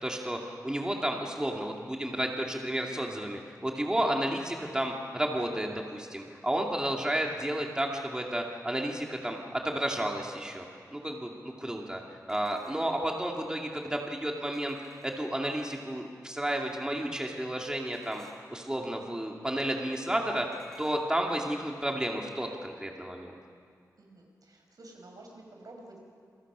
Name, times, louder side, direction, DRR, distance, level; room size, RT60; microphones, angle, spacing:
voice 1, 0.0-10.6 10.9-12.0 12.3-18.2 18.5-20.5 20.8-23.4, right 1 dB, 10° right, 0 dB, 2.4 m, -32 dB
sound 1, 12.3-13.1 14.5-15.4 17.9-18.6 20.5-21.0, equal, 5° left, 3.8 m, -54 dB
voice 2, 24.0-26.0, right 2 dB, 70° right, 1 dB, 5.4 m, -51 dB
28.5 x 22.5 x 6.2 m, 2.2 s
wide cardioid pair, 95°, 7 cm